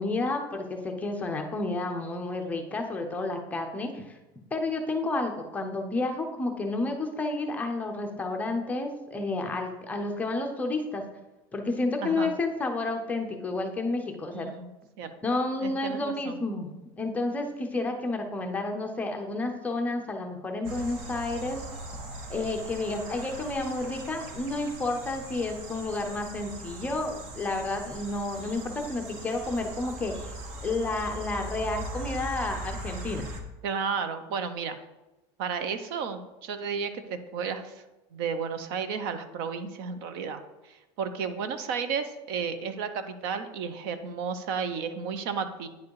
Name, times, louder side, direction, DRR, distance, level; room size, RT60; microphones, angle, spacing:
voice 1, 0.0-4.2 4.5-11.0 11.5-14.5 15.2-16.7 17.0-21.6 22.3-30.3 30.6-33.3, left 2 dB, 10° left, 3 dB, 0.6 m, -31 dB
voice 2, 14.3-14.7 15.0-15.1 15.6-16.4 33.6-34.8 35.4-37.8 38.1-40.4 40.7-45.7, right 6 dB, 60° right, 10 dB, 0.8 m, -33 dB
sound 1, 20.6-33.4, right 1 dB, 45° right, 1.1 m, -40 dB
9.5 x 4.8 x 4.7 m, 1.0 s
cardioid pair, 170°, 13 cm